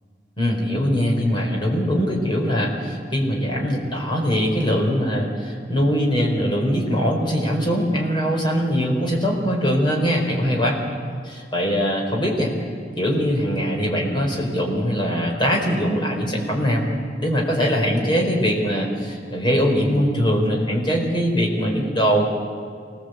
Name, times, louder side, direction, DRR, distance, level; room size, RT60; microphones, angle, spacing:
voice 1, 0.4-10.8 11.2-12.5 13.0-16.8 17.2-22.2, equal, 30° left, 0 dB, 4.6 m, -22 dB
25.5 x 18.5 x 8.1 m, 2.2 s
head